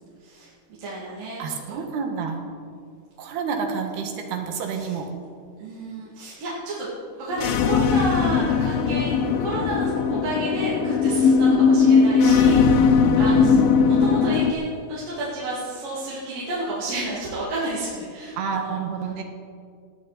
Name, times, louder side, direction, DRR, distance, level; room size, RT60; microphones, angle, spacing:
voice 1, 0.2-0.5 0.8-1.8 2.5-2.6 4.6-5.0 5.6-6.9 7.2-13.6 13.8-18.8, right 2 dB, 60° right, -8 dB, 4.0 m, -31 dB
voice 2, 1.4-2.4 3.2-5.1 13.4-13.7 18.4-19.2, right 6 dB, 85° right, 3 dB, 3.7 m, -29 dB
sound 1, 7.3-14.5, left 5 dB, 75° left, 2.6 m, -19 dB
19.5 x 14.0 x 4.2 m, 2.2 s
omnidirectional pair, 4.5 m